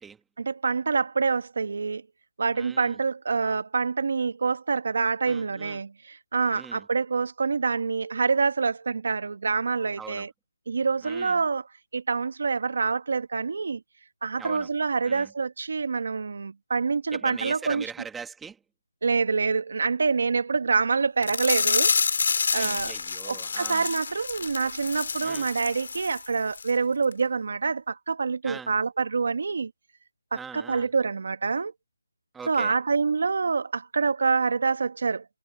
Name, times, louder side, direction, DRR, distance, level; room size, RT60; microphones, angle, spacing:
voice 1, 0.4-2.0 2.4-10.3 10.7-11.6 11.9-13.8 14.2-17.8 19.0-22.0 22.5-22.9 23.3-29.7 30.3-31.7 32.5-35.2, right 4 dB, 60° right, 1.7 m, -26 dB
voice 2, 2.5-3.0 5.2-5.8 6.5-6.9 10.0-10.3 11.0-11.4 14.4-14.7 15.0-15.3 17.1-18.6 22.5-23.9 25.2-25.5 28.4-28.7 30.3-30.9 32.3-32.8, right 6 dB, 5° right, 1.7 m, -41 dB
sound 1, 21.2-26.3 26.5-26.7 27.1-27.2, left 5 dB, 60° left, 5.5 m, -28 dB
figure-of-eight pair, 165°, 0 cm